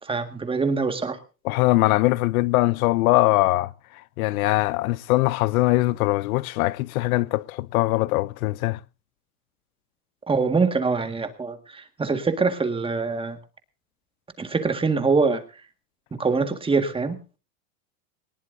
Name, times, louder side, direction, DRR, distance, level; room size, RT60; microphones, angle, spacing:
voice 1, 0.0-1.2 10.3-13.4 14.4-15.4 16.2-17.2, right 4 dB, 10° right, 1.8 m, -24 dB
voice 2, 1.4-8.8, left 19 dB, 65° left, 0.6 m, -22 dB
19.5 x 19.0 x 2.7 m
supercardioid pair, 135°, 46 cm